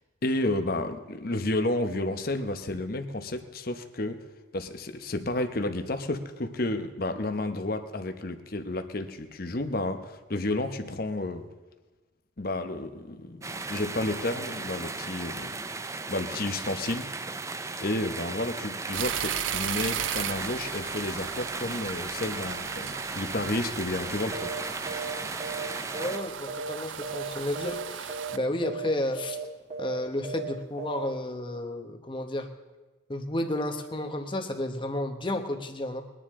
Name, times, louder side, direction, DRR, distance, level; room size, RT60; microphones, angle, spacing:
voice 1, 0.2-4.2 4.5-11.4 12.4-15.5 16.1-17.1 17.8-24.5, left 2 dB, 50° left, 7 dB, 0.9 m, -31 dB
sound 1, 13.4-26.2, right 3 dB, 15° right, 0.4 m, -36 dB
sound 2, 18.9-28.4, right 10 dB, 90° right, 0.5 m, -36 dB
sound 3, 24.3-24.6 24.9-25.1 25.4-26.8 27.0-27.3 27.5-27.8 28.1-28.4 28.6-28.9 29.2-29.4 29.7-30.0 30.2-30.5 30.8-31.1, right 5 dB, 35° right, 1.6 m, -36 dB
voice 2, 25.9-29.4 29.8-32.5 33.1-36.0, left 1 dB, 25° left, 5 dB, 1.1 m, -32 dB
22.0 x 10.0 x 3.7 m, 1.2 s
head